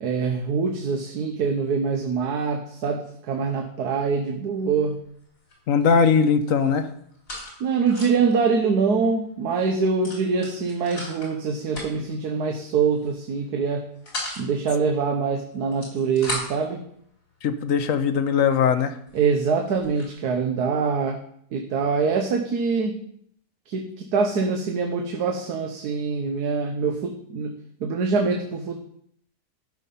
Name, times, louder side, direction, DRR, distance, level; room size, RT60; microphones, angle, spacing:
voice 1, 0.0-4.9 7.6-13.9 14.4-16.8 19.1-21.2 21.5-23.0 23.7-28.7, right 5 dB, 85° right, 3 dB, 1.5 m, -24 dB
sound 1, 4.6-4.9 5.2-6.0 6.3-8.3 8.7-8.8 9.1-9.3 10.0-11.3 11.7-12.2 12.9-13.2 13.6-14.4 15.5-16.7 17.4-17.5 18.1-18.2 18.8-18.9 19.1-20.1, left 1 dB, 90° left, 4.1 m, -36 dB
voice 2, 5.7-6.9 17.4-19.0, left 6 dB, 65° left, 10 dB, 1.1 m, -20 dB
12.5 x 5.7 x 5.4 m, 0.67 s
omnidirectional pair, 1.6 m